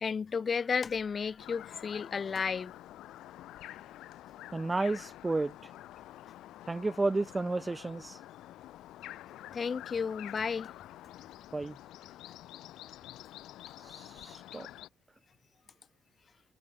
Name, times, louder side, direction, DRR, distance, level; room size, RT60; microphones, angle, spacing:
voice 1, 0.0-2.7 9.5-10.7, left 6 dB, 40° left, 0.5 m, -33 dB
sound 1, 1.4-14.9, left 14 dB, 85° left, 0.6 m, -48 dB
voice 2, 4.5-5.5 6.7-8.2 11.5-11.8 13.9-14.7, right 3 dB, 20° right, 0.3 m, -32 dB
cardioid pair, 90°, 0 cm